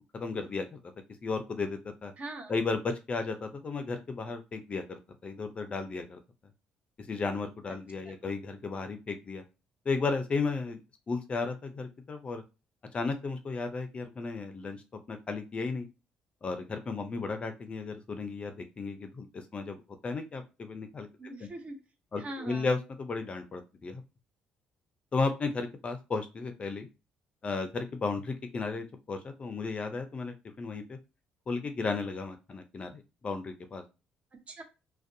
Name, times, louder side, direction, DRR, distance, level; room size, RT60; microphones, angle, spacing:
voice 1, 0.1-0.8 1.2-2.1 2.5-6.2 7.1-9.4 9.9-12.4 12.9-15.9 16.4-21.1 21.4-21.5 22.1-24.0 25.1-26.9 27.4-31.0 31.5-33.8, left 4 dB, 35° left, 7 dB, 0.5 m, -34 dB
voice 2, 2.2-2.6 8.0-8.3 21.2-21.8 22.2-22.8 34.3-34.6, right 2 dB, 40° right, 4 dB, 0.8 m, -42 dB
2.5 x 2.2 x 2.6 m, 0.28 s
cardioid pair, 100°, 3 cm